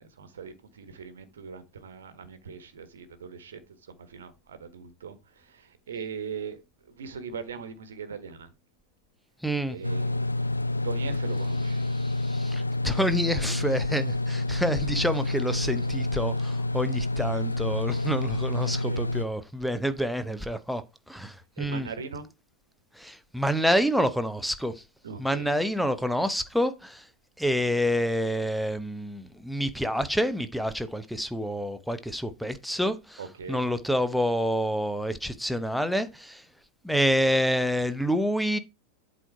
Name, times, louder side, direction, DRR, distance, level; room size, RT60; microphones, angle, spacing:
voice 1, 0.0-8.5 9.6-10.3 10.8-11.9 17.2-17.4 18.6-19.1 21.6-22.3 25.0-25.5 33.2-33.6, right 6 dB, 65° right, 1.3 m, -40 dB
voice 2, 9.4-9.8 11.9-21.9 23.0-24.8 25.2-27.1 27.4-33.2 33.5-36.4 36.8-38.6, equal, ahead, 0.8 m, -28 dB
sound 1, 9.8-19.2, left 2 dB, 80° left, 0.4 m, -28 dB
8.0 x 4.6 x 4.5 m
figure-of-eight pair, 90°, 0 cm